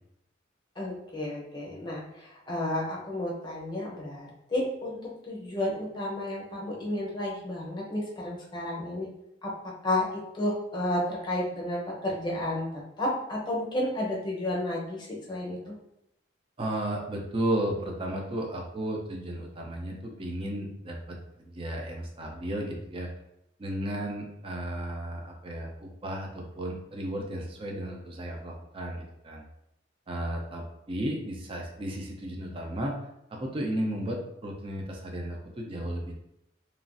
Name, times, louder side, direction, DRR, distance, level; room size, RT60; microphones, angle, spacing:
voice 1, 0.8-9.1 9.4-9.5 9.8-12.7 13.0-15.6, left 1 dB, 25° left, -4 dB, 0.7 m, -32 dB
voice 2, 16.6-23.1 23.6-29.4 30.1-33.0 33.3-36.1, right 1 dB, 30° right, 1 dB, 0.5 m, -34 dB
3.0 x 2.4 x 2.5 m, 0.81 s
head